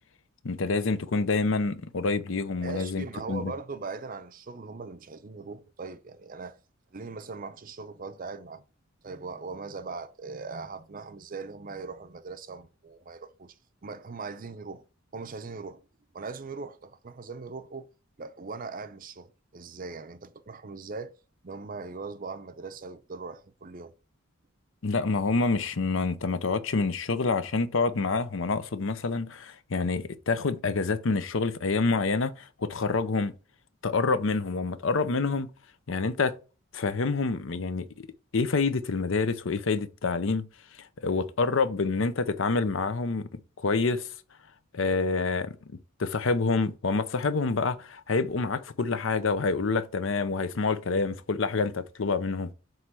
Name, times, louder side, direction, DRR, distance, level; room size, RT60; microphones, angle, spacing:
voice 1, 0.4-3.5 24.8-33.3 33.8-35.5 35.9-36.4 36.7-38.1 38.3-40.4 41.0-44.1 44.7-45.6 46.0-52.5, left 4 dB, 65° left, 0.6 m, -27 dB
voice 2, 2.6-6.6 6.9-8.6 9.0-13.5 13.8-14.8 15.1-15.8 16.1-17.9 18.2-21.1 21.4-23.9, right 4 dB, 40° right, 0.6 m, -40 dB
7.8 x 3.1 x 6.1 m
head